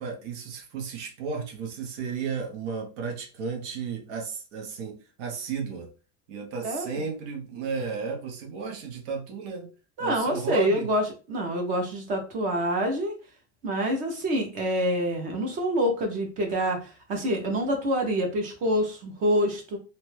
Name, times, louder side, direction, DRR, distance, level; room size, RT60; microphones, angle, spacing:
voice 1, 0.0-5.9 6.3-9.7 10.0-10.9, right 5 dB, 70° right, 0.9 m, -33 dB
voice 2, 10.0-13.1 13.6-19.8, equal, 25° right, 0.4 m, -26 dB
2.8 x 2.2 x 3.1 m
cardioid pair, 180°, 36 cm